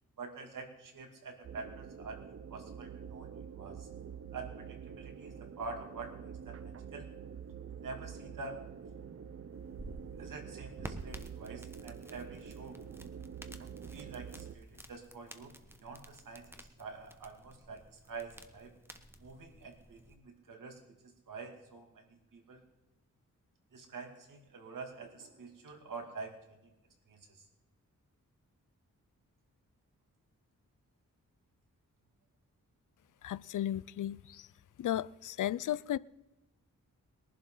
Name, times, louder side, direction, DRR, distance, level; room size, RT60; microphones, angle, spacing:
voice 1, 0.2-2.2 2.5-3.3 3.6-3.9 4.3-7.1 7.7-8.6 10.2-12.8 13.9-17.8 18.1-18.7 19.2-22.6 23.7-26.3 27.1-27.4, right 4 dB, 85° right, 2.4 m, -47 dB
sound 1, 1.4-14.6, right 7 dB, 50° right, 0.6 m, -47 dB
sound 2, 9.5-20.2, right 1 dB, 5° right, 1.2 m, -52 dB
voice 2, 33.2-34.5 34.8-36.0, left 12 dB, 75° left, 0.5 m, -34 dB
22.0 x 11.5 x 3.9 m
wide cardioid pair, 90°, 32 cm